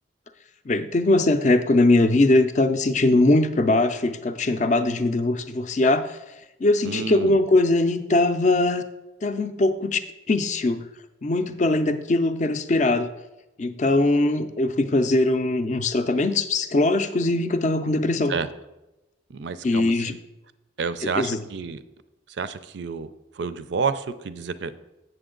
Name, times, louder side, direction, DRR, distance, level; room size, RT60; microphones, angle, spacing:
voice 1, 0.7-6.1 6.6-8.8 9.2-10.0 10.3-10.8 11.2-13.1 13.6-18.3 19.6-20.1 21.2-21.4, left 2 dB, 40° left, 9 dB, 0.4 m, -21 dB
voice 2, 6.8-7.4 18.3-18.5 19.3-20.2 20.8-21.8 22.3-23.1 23.3-24.8, right 5 dB, 65° right, 13 dB, 0.4 m, -29 dB
7.9 x 6.8 x 3.8 m, 0.98 s
head